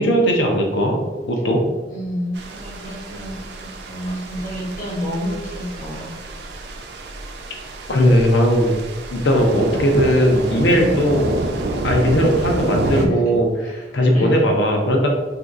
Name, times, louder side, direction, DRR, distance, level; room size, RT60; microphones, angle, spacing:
voice 1, 0.0-1.6 7.9-8.7 9.1-11.3 11.8-13.5 13.9-15.1, equal, 85° left, 1 dB, 0.6 m, -17 dB
voice 2, 1.9-6.1 10.7-11.1 12.9-14.5, equal, 50° left, -4 dB, 1.1 m, -30 dB
sound 1, 2.3-13.1, right 2 dB, 65° right, 0.4 m, -29 dB
2.7 x 2.3 x 3.6 m, 1.2 s
head